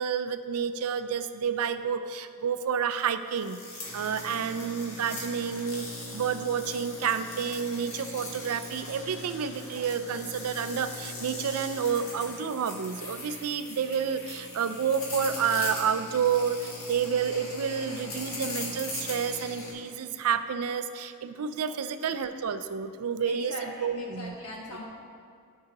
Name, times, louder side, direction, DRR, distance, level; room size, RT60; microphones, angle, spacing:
voice 1, 0.0-3.6 3.9-5.9 6.1-23.5 23.8-24.3, right 7 dB, 85° right, 11 dB, 0.4 m, -29 dB
sound 1, 3.3-19.7, left 2 dB, 70° left, 1.8 m, -40 dB
voice 2, 23.2-24.8, left 1 dB, 90° left, -3 dB, 1.5 m, -40 dB
13.5 x 5.5 x 2.9 m, 2.2 s
head